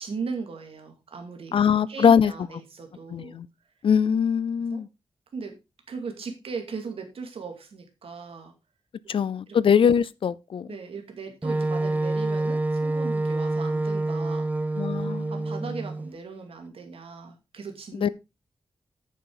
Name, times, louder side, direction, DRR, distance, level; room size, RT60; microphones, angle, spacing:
voice 1, 0.0-1.6 1.9-3.4 4.7-4.8 5.3-5.6 5.9-8.5 9.1-9.2 9.5-9.6 10.7-14.5 15.0-18.1, right 5 dB, 80° right, 2.3 m, -38 dB
voice 2, 1.5-2.3 3.1-3.5 3.8-4.9 9.1-10.7 14.8-15.3 17.9-18.1, left 7 dB, 65° left, 0.5 m, -22 dB
Wind instrument woodwind instrument, 11.4-16.1, right 2 dB, 15° right, 0.6 m, -27 dB
9.1 x 6.9 x 3.9 m
wide cardioid pair, 125°, 10 cm